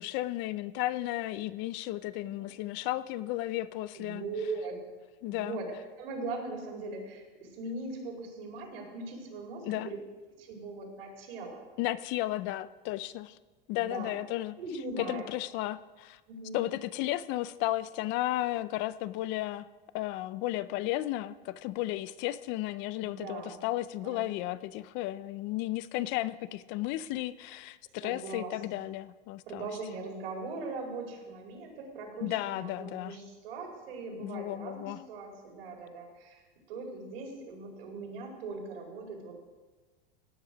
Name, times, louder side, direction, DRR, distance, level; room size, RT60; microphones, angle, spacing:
voice 1, 0.0-4.2 5.2-5.6 9.6-9.9 11.8-13.4 13.7-14.5 15.0-16.2 16.5-19.7 19.9-29.7 32.2-33.2 34.2-35.0, left 16 dB, 40° left, 16 dB, 0.4 m, -34 dB
voice 2, 2.2-2.5 3.9-4.8 5.3-5.7 6.0-10.0 10.4-11.6 13.8-14.1 14.6-15.3 16.3-16.6 23.0-23.6 24.0-24.3 28.0-28.9 29.5-36.4 36.7-39.3, right 3 dB, 80° right, 0 dB, 4.6 m, -40 dB
17.0 x 9.5 x 5.1 m, 1.3 s
supercardioid pair, 145°, 29 cm